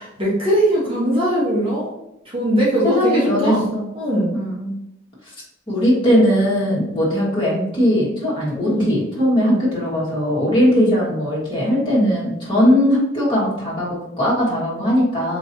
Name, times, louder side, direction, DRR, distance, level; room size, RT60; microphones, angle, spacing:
voice 1, 0.0-1.9 2.3-3.7 4.0-4.3 8.6-8.9 9.4-9.6 10.5-10.9 12.0-12.1, right 1 dB, 25° right, -6 dB, 0.9 m, -20 dB
voice 2, 2.8-3.9 4.3-4.8 5.7-15.4, equal, 25° left, -6 dB, 1.4 m, -19 dB
4.0 x 3.0 x 2.7 m, 0.83 s
head